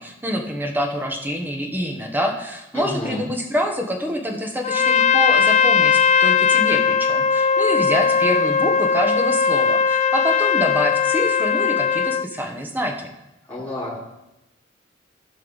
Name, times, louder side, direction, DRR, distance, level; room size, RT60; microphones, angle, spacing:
voice 1, 0.0-13.1, equal, 10° right, 2 dB, 1.1 m, -26 dB
voice 2, 2.7-3.2 13.5-14.0, left 1 dB, 10° left, -13 dB, 4.0 m, -30 dB
Trumpet, 4.6-12.3, left 6 dB, 35° left, 0.4 m, -18 dB
16.0 x 5.4 x 4.0 m, 0.92 s
head